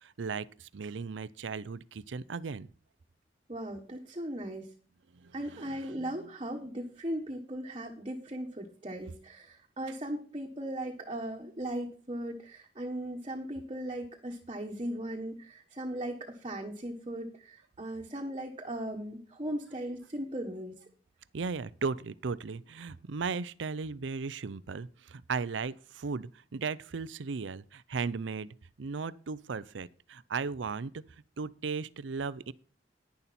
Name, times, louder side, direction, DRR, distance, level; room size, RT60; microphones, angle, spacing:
voice 1, 0.0-2.7 5.2-6.3 21.3-31.0 31.4-32.5, right 5 dB, 85° right, 0.5 m, -36 dB
voice 2, 3.5-4.7 5.3-20.8, right 1 dB, 30° right, 1.4 m, -38 dB
11.0 x 10.5 x 4.3 m
head